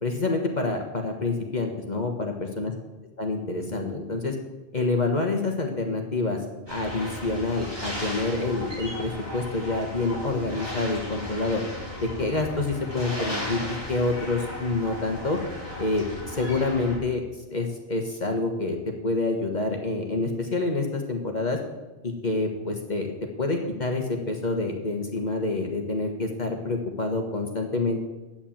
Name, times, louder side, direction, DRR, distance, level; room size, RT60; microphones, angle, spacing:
voice 1, 0.0-2.7 3.2-4.4 4.7-6.4 6.7-11.6 12.0-15.4 15.8-17.2 17.5-18.8 19.0-21.6 22.0-23.1 23.4-28.0, left 3 dB, 45° left, 2 dB, 1.5 m, -27 dB
sound 1, 6.7-17.0, left 1 dB, 25° right, 4.6 m, -36 dB
10.5 x 8.7 x 7.3 m, 1.1 s
omnidirectional pair, 1.1 m